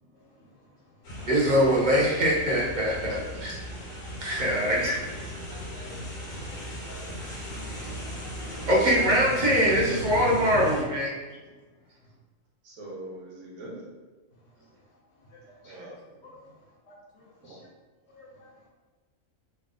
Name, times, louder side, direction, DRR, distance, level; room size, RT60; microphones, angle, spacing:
sound 1, 1.0-10.8, equal, 80° left, 1.4 m, -37 dB
voice 1, 1.3-3.6 4.2-5.0 8.7-11.1, equal, 45° right, -5 dB, 0.7 m, -23 dB
voice 2, 5.6-6.0 6.5-6.6 6.8-7.3 12.6-13.8 15.6-15.9, right 1 dB, 80° right, -4 dB, 1.4 m, -43 dB
voice 3, 15.2-15.8 16.2-16.4 16.9-17.7 18.1-18.7, left 1 dB, 60° left, -2 dB, 0.9 m, -53 dB
3.2 x 2.4 x 3.7 m, 1.3 s
omnidirectional pair, 1.4 m